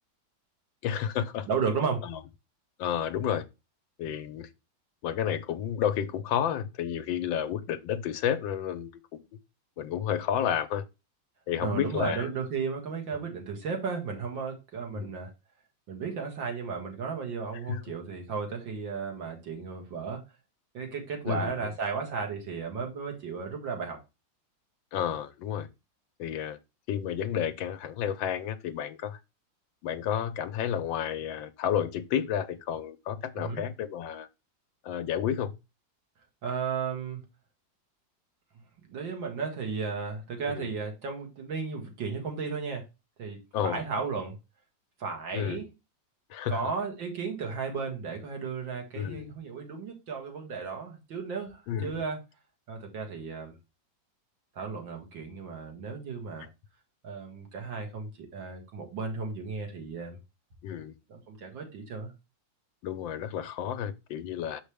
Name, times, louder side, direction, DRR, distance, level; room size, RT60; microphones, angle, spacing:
voice 1, 0.8-1.5 2.0-2.2 2.8-3.5 4.0-4.5 5.0-9.2 9.8-10.9 11.5-12.3 13.1-13.2 14.9-15.1 17.7-17.8 21.2-21.7 24.9-25.7 26.2-26.6 26.9-29.2 29.8-34.3 34.8-35.5 40.5-40.7 43.5-43.8 45.3-45.7 46.3-46.6 48.9-49.4 51.7-52.0 60.6-60.9 62.8-64.6, left 9 dB, 85° left, 1.4 m, -31 dB
voice 2, 1.5-2.0 11.6-15.3 15.9-20.2 20.7-24.0 33.4-33.6 36.4-37.2 38.9-42.8 43.2-43.4 43.6-44.3 45.0-45.7 46.5-52.2 52.7-53.5 54.6-56.5 57.0-60.2 61.1-62.1, right 5 dB, 75° right, 2.5 m, -34 dB
6.4 x 5.2 x 3.4 m
omnidirectional pair, 2.1 m